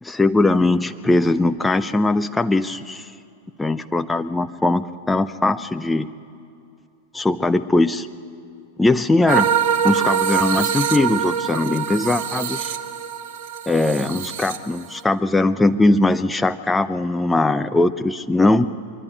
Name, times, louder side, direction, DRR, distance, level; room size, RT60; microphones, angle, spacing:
voice 1, 0.0-3.1 3.6-6.1 7.1-8.1 8.8-9.5 9.8-12.7 13.7-18.7, left 2 dB, 10° left, 9 dB, 0.6 m, -20 dB
sound 1, 9.3-15.0, right 8 dB, 50° right, 1.6 m, -23 dB
23.5 x 23.5 x 9.2 m, 2.5 s
figure-of-eight pair, 90°, 0 cm